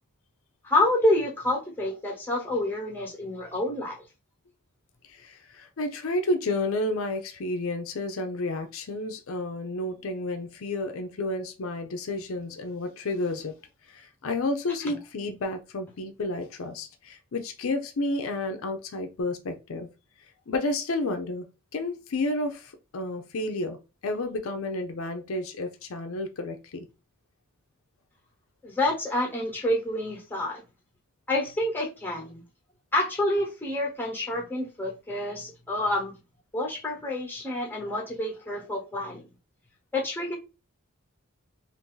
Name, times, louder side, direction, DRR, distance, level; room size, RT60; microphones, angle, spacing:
voice 1, 0.6-4.0 14.8-15.0 28.6-30.6 31.3-32.4 32.9-36.1 36.5-39.3 39.9-40.3, left 1 dB, 10° left, 1.0 m, -28 dB
voice 2, 5.1-13.5 13.9-19.9 20.5-21.5 21.7-23.8 24.0-26.9, left 2 dB, 70° left, 0.5 m, -31 dB
2.6 x 2.6 x 3.7 m
head